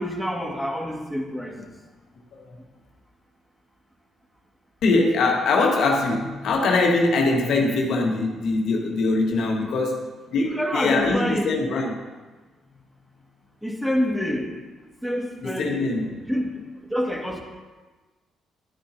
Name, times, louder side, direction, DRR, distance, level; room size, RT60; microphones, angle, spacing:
voice 1, 0.0-1.7 10.4-11.5 13.6-14.5 15.0-15.8 16.3-16.5 16.9-17.4, equal, 5° right, 1 dB, 2.0 m, -27 dB
voice 2, 4.8-11.9 15.4-16.2, left 3 dB, 65° left, 1 dB, 1.6 m, -22 dB
11.0 x 9.7 x 2.8 m, 1.3 s
hypercardioid pair, 50°, 0 cm